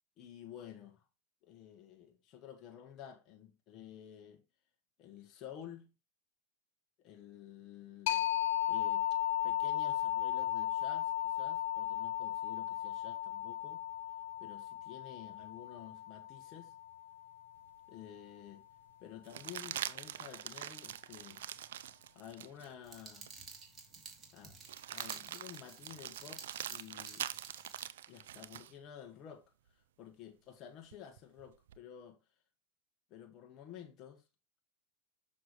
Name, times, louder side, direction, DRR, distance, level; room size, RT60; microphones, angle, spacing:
voice 1, 0.2-1.0 1.4-4.4 5.0-5.9 7.0-8.2 8.7-9.1 9.4-13.8 14.4-16.7 17.9-18.6 19.0-21.4 22.1-23.3 24.3-24.6 24.9-26.4 26.7-27.2 28.1-29.4 30.0-32.2 33.1-34.2, left 9 dB, 40° left, 1.2 m, -51 dB
sound 1, 8.1-17.5, left 12 dB, 70° left, 0.7 m, -35 dB
sound 2, 17.7-17.8 19.2-22.7 23.3-23.4 24.6-28.7 30.9-31.8, right 11 dB, 80° right, 0.4 m, -44 dB
sound 3, 22.8-27.9, right 4 dB, 25° right, 2.2 m, -52 dB
6.6 x 5.9 x 3.0 m
hypercardioid pair, 115°, 0 cm